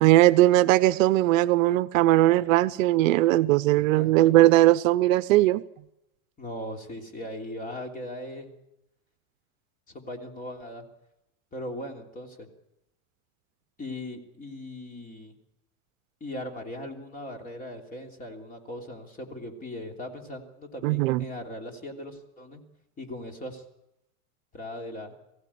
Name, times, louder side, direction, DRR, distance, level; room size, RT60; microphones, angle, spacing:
voice 1, 0.0-5.6 20.8-21.2, right 16 dB, 65° right, 16 dB, 0.7 m, -19 dB
voice 2, 3.7-4.2 6.4-8.5 9.9-10.8 11.5-12.5 13.8-15.3 16.2-22.6 23.0-23.6 24.5-25.1, left 1 dB, 20° left, 3 dB, 3.2 m, -39 dB
22.5 x 16.0 x 8.5 m, 0.88 s
supercardioid pair, 150°, 43 cm